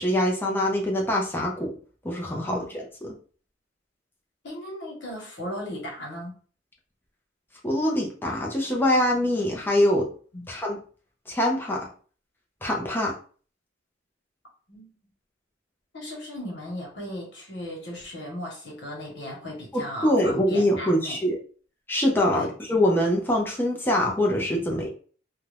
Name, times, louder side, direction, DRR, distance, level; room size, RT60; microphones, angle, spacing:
voice 1, 0.0-1.7 2.0-2.6 7.6-10.1 10.5-10.8 11.3-11.9 12.6-13.1 19.7-21.4 21.9-24.9, left 1 dB, 10° left, -2 dB, 0.7 m, -24 dB
voice 2, 2.4-2.8 4.4-6.4 10.3-10.5 14.7-14.9 15.9-21.2 22.3-22.5, equal, 65° left, -2 dB, 1.3 m, -36 dB
2.7 x 2.3 x 3.3 m, 0.42 s
head